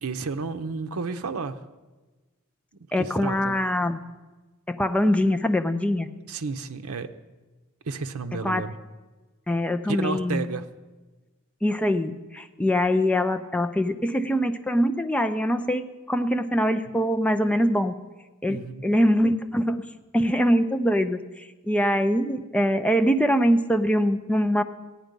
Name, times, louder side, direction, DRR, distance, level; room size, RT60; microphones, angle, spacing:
voice 1, 0.0-1.6 3.0-3.6 6.3-7.1 7.9-8.7 9.9-10.6 18.5-18.8, right 4 dB, 80° right, 8 dB, 0.7 m, -31 dB
voice 2, 2.9-4.0 4.7-6.1 8.3-8.7 9.5-10.5 11.6-17.9 18.4-19.8 20.1-24.6, equal, 5° left, 8 dB, 0.5 m, -23 dB
14.5 x 10.0 x 5.2 m, 1.2 s
head